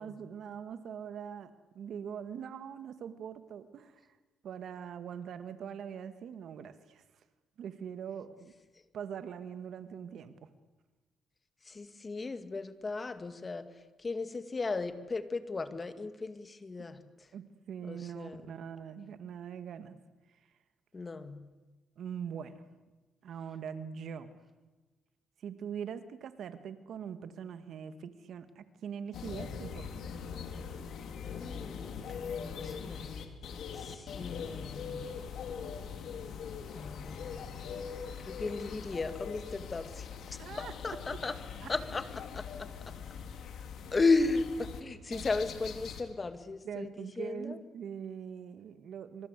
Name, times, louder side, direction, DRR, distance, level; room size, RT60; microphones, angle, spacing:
voice 1, 0.0-4.1 4.4-7.0 7.6-8.5 8.9-10.5 17.3-20.0 22.0-22.6 23.2-24.4 25.4-29.9 40.4-40.7 41.6-41.7 45.1-45.2 46.6-49.3, right 7 dB, 70° right, 11 dB, 1.9 m, -42 dB
voice 2, 11.6-13.7 14.0-17.0 17.9-18.5 20.9-21.4 31.2-32.0 32.5-35.0 36.7-37.5 38.2-40.4 40.8-41.3 41.7-42.0 42.3-42.7 43.9-47.6, left 3 dB, 30° left, 10 dB, 2.2 m, -35 dB
sound 1, 29.1-44.8 45.1-46.0, left 6 dB, 75° left, 3.3 m, -42 dB
26.0 x 26.0 x 8.3 m, 1.2 s
cardioid pair, 85°, 0 cm